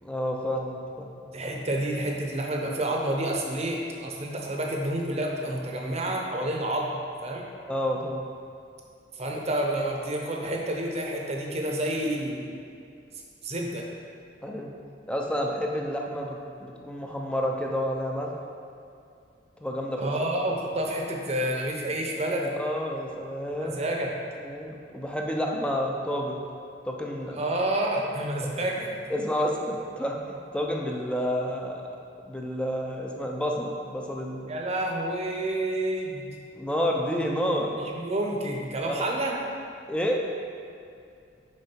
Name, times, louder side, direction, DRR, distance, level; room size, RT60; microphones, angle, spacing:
voice 1, 0.0-1.2 7.7-8.2 14.4-14.7 15.1-18.3 19.6-20.1 22.3-23.8 24.4-26.4 26.8-27.4 29.1-31.8 32.3-34.5 36.5-37.7 38.8-39.1 39.9-40.2, equal, 5° left, 0 dB, 0.6 m, -30 dB
voice 2, 1.3-7.0 7.2-7.4 9.2-12.5 13.4-13.8 19.9-22.5 23.6-24.1 27.3-28.9 34.5-36.3 37.8-39.3, right 1 dB, 35° right, 0 dB, 0.8 m, -29 dB
6.6 x 4.6 x 4.5 m, 2.5 s
head